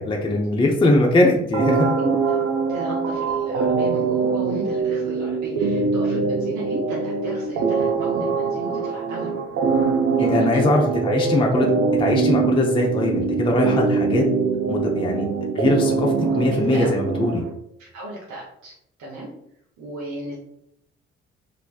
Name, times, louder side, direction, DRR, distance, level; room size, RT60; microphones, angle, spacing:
voice 1, 0.0-1.9 10.2-11.7 12.0-14.2 14.7-15.3 15.5-17.4, left 2 dB, 15° left, 0 dB, 0.5 m, -21 dB
sound 1, 1.5-17.5, right 5 dB, 45° right, 0.5 m, -23 dB
voice 2, 1.9-2.4 2.7-9.4 9.7-9.9 10.2-10.7 16.7-16.9 17.8-18.7 19.0-19.3 19.8-20.4, right 1 dB, 60° right, -4 dB, 0.8 m, -34 dB
3.2 x 2.5 x 2.2 m, 0.76 s
figure-of-eight pair, 40°, 33 cm